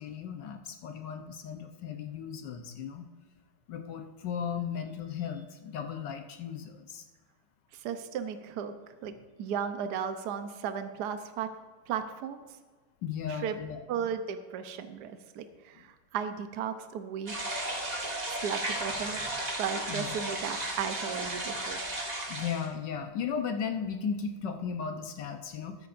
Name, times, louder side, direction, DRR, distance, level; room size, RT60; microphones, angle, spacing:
voice 1, 0.0-3.1 3.7-7.1 13.0-14.1 19.9-20.1 22.3-25.9, left 7 dB, 65° left, 6 dB, 1.4 m, -36 dB
voice 2, 7.7-8.7 9.0-9.1 9.4-11.5 11.9-12.4 13.3-13.5 13.9-17.3 18.4-19.2 19.6-21.8, right 7 dB, 60° right, 9 dB, 1.2 m, -35 dB
sound 1, 17.3-22.7, right 1 dB, 20° right, 1.4 m, -34 dB
13.5 x 13.0 x 2.6 m, 1.4 s
omnidirectional pair, 2.3 m